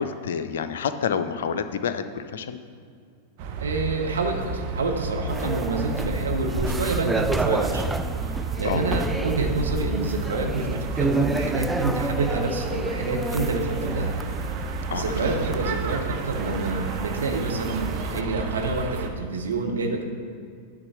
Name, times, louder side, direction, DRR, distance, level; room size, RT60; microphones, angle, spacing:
voice 1, 0.0-2.6 5.4-5.6 8.6-8.8 14.9-15.3, left 7 dB, 60° left, 11 dB, 0.5 m, -28 dB
sound 1, 3.4-19.1, right 4 dB, 45° right, 0.8 m, -32 dB
voice 2, 3.6-8.0 8.6-14.1 14.9-20.0, right 3 dB, 70° right, 2 dB, 1.0 m, -28 dB
sound 2, 5.3-18.2, right 2 dB, 5° right, 0.3 m, -30 dB
9.6 x 3.7 x 7.0 m, 2.3 s
figure-of-eight pair, 90°, 0 cm